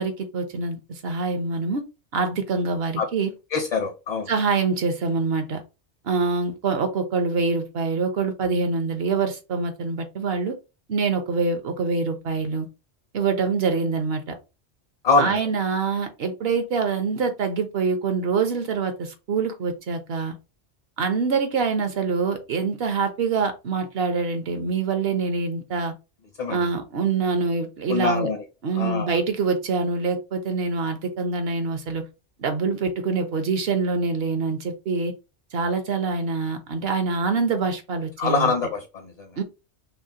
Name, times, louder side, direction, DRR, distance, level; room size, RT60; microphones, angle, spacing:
voice 1, 0.0-1.8 2.1-3.3 4.3-5.6 6.0-10.5 10.9-12.7 13.1-14.4 15.2-20.4 21.0-26.0 26.5-28.3 28.6-32.1 32.4-35.1 35.5-38.5 39.4-39.5, right 4 dB, 65° right, 1.0 m, -25 dB
voice 2, 3.5-4.3 15.0-15.4 26.4-26.7 27.9-28.4 28.8-29.1 38.2-39.3, left 4 dB, 40° left, 0.7 m, -24 dB
5.6 x 2.1 x 2.8 m
omnidirectional pair, 1.2 m